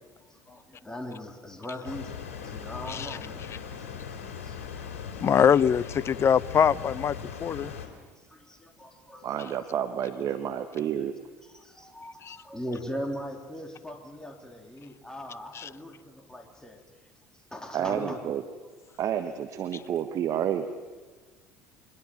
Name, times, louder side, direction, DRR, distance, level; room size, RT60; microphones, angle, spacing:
voice 1, 0.3-3.6 4.4-4.6 8.2-9.5 11.4-16.8 17.3-18.2 18.9-19.0, equal, 10° left, 3 dB, 3.3 m, -40 dB
sound 1, 1.8-7.9, left 7 dB, 80° left, 3.1 m, -39 dB
voice 2, 5.2-7.1 7.4-7.7 12.3-12.4, left 8 dB, 35° left, 22 dB, 0.6 m, -22 dB
voice 3, 9.2-11.1 17.7-18.4 19.0-20.7, right 9 dB, 50° right, 8 dB, 1.4 m, -30 dB
24.0 x 21.0 x 7.6 m, 1.4 s
hypercardioid pair, 65°, 7 cm